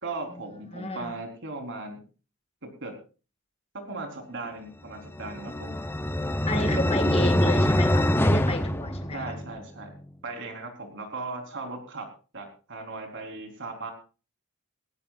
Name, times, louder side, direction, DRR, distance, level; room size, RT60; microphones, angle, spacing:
voice 1, 0.0-2.0 2.6-3.0 3.9-5.8 6.5-7.5 9.1-9.9 10.2-12.1 12.3-13.9, right 3 dB, 55° right, 4.1 m, -37 dB
voice 2, 0.7-1.1 6.5-9.3, left 2 dB, 25° left, 1.9 m, -32 dB
sound 1, 5.1-9.6, left 1 dB, 10° left, 0.8 m, -24 dB
20.0 x 16.5 x 2.5 m
head